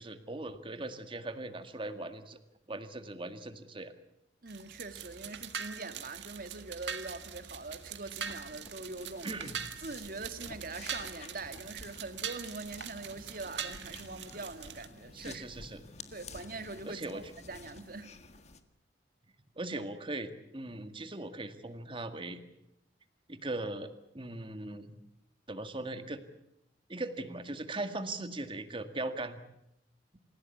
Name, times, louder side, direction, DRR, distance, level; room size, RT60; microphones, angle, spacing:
voice 1, 0.0-2.4 2.7-3.9 9.2-9.6 15.1-15.8 16.8-17.2 19.6-22.4 23.3-24.9 25.5-26.2 26.9-29.4, right 2 dB, 30° right, 1.9 m, -39 dB
voice 2, 4.4-9.4 9.8-15.5 16.1-18.1, right 3 dB, 55° right, 1.9 m, -43 dB
sound 1, 4.5-14.9, right 7 dB, 85° right, 1.9 m, -43 dB
sound 2, 8.2-18.6, left 4 dB, 40° left, 1.7 m, -52 dB
sound 3, 11.4-17.8, equal, 70° left, 3.2 m, -59 dB
28.0 x 16.5 x 8.4 m
head